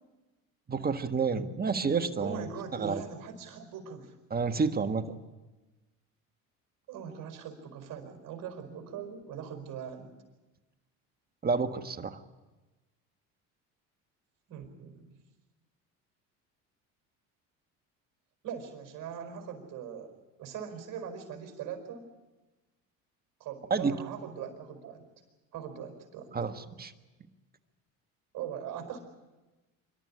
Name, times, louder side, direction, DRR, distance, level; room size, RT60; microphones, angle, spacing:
voice 1, 0.7-2.5 2.7-3.0 4.3-5.1 11.4-12.2 23.7-23.9 26.3-26.9, right 5 dB, 25° right, 9 dB, 1.5 m, -29 dB
voice 2, 2.2-4.1 6.9-10.1 14.5-15.2 18.4-22.1 23.4-25.0 25.5-26.3 28.3-29.0, right 7 dB, 55° right, 6 dB, 4.9 m, -41 dB
25.5 x 12.5 x 10.0 m, 1.2 s
supercardioid pair, 85°, 38 cm